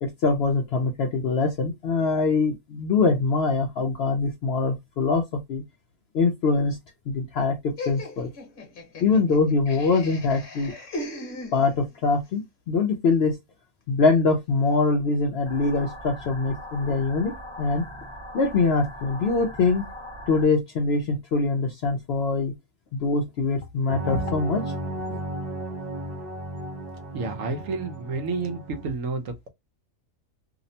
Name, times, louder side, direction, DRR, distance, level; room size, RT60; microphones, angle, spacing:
voice 1, 0.0-5.6 6.1-6.8 7.1-8.3 9.0-10.7 11.5-13.4 13.9-17.8 18.3-19.8 20.3-22.5 22.9-24.6 25.1-25.2, left 4 dB, 65° left, 0.6 m, -23 dB
Laughter, 7.8-12.0, left 1 dB, 40° left, 1.1 m, -38 dB
sound 1, 15.5-20.5, equal, 25° left, 0.8 m, -40 dB
sound 2, 23.9-28.9, right 1 dB, 35° right, 0.9 m, -34 dB
voice 2, 27.1-29.5, right 4 dB, 70° right, 1.0 m, -30 dB
2.8 x 2.0 x 2.6 m
omnidirectional pair, 1.5 m